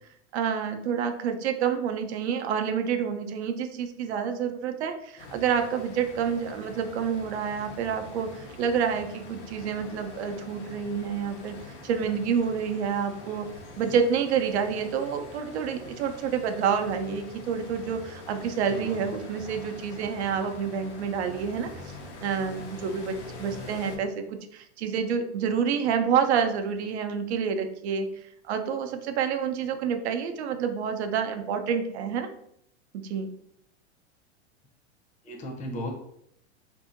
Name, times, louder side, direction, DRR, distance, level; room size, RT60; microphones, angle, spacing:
voice 1, 0.3-11.5 11.8-13.5 13.8-21.9 22.2-28.1 28.5-32.3 32.9-33.3, right 7 dB, 75° right, 6 dB, 0.6 m, -28 dB
sound 1, 5.2-24.0, left 2 dB, 85° left, 0.8 m, -44 dB
voice 2, 18.7-19.1 35.2-35.9, equal, 20° left, 2 dB, 0.6 m, -36 dB
2.7 x 2.6 x 2.5 m, 0.71 s
hypercardioid pair, 125°, 34 cm